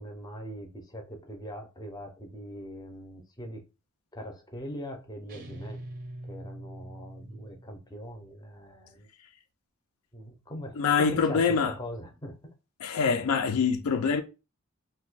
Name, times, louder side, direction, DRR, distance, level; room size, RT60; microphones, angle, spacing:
voice 1, 0.0-3.6 4.1-5.8 6.2-9.1 10.1-12.3, equal, 15° left, 0.5 m, -41 dB
sound 1, 5.3-7.9, right 1 dB, 40° right, 0.5 m, -43 dB
voice 2, 10.8-11.7 12.8-14.2, left 5 dB, 80° left, 0.4 m, -25 dB
2.6 x 2.2 x 3.9 m
head